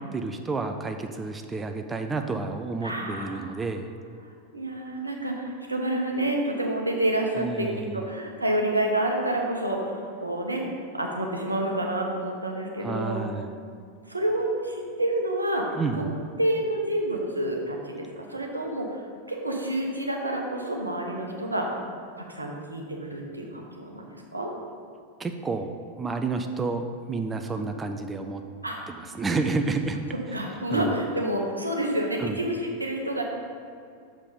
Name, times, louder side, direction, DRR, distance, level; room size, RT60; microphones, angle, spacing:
voice 1, 0.1-3.9 7.4-8.0 12.8-13.5 15.7-16.1 25.2-28.4 28.9-30.0 30.7-30.9 32.2-32.4, right 3 dB, 15° right, 6 dB, 0.4 m, -30 dB
voice 2, 2.8-3.6 4.2-7.7 7.9-10.6 10.9-13.2 14.1-15.7 16.0-16.1 16.4-19.0 19.3-21.7 22.2-24.1 24.3-24.5 27.5-27.7 28.6-28.8 30.3-33.2, right 1 dB, 85° right, 0 dB, 1.0 m, -28 dB
6.5 x 5.1 x 5.4 m, 2.4 s
figure-of-eight pair, 90°, 0 cm